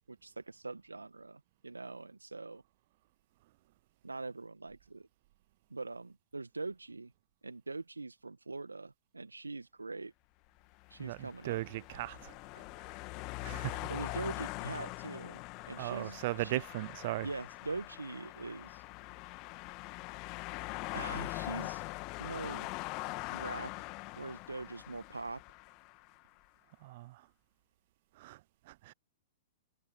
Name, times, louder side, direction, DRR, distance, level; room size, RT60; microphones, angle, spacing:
voice 1, 0.1-2.6 4.0-5.1 5.7-7.1 7.4-10.1 10.9-11.6 13.9-15.4 15.7-16.6 17.2-18.8 20.9-21.9 22.2-22.7 23.3-23.7 24.2-25.4, right 3 dB, 85° right, 1.7 m, -42 dB
sound 1, 10.7-26.1, left 26 dB, 40° left, 2.0 m, -43 dB
voice 2, 11.0-12.9 13.2-13.9 15.8-17.3 26.8-27.3 28.1-28.9, right 18 dB, 50° right, 0.6 m, -39 dB
figure-of-eight pair, 105°, 0 cm